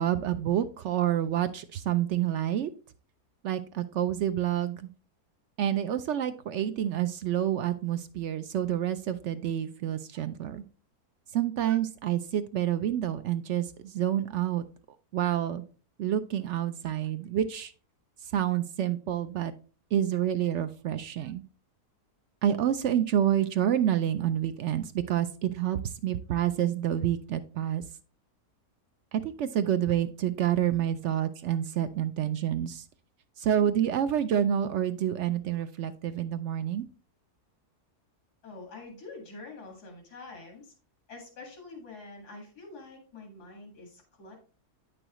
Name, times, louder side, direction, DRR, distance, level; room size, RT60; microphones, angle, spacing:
voice 1, 0.0-2.7 3.4-4.8 5.6-10.6 11.3-14.6 15.1-15.6 16.0-17.7 18.3-19.5 19.9-21.4 22.4-27.8 29.1-32.8 33.4-36.8, right 10 dB, 70° right, 10 dB, 0.7 m, -28 dB
voice 2, 38.4-40.7 41.1-44.4, left 3 dB, 80° left, 1 dB, 2.5 m, -46 dB
8.8 x 6.2 x 3.0 m, 0.36 s
omnidirectional pair, 1.7 m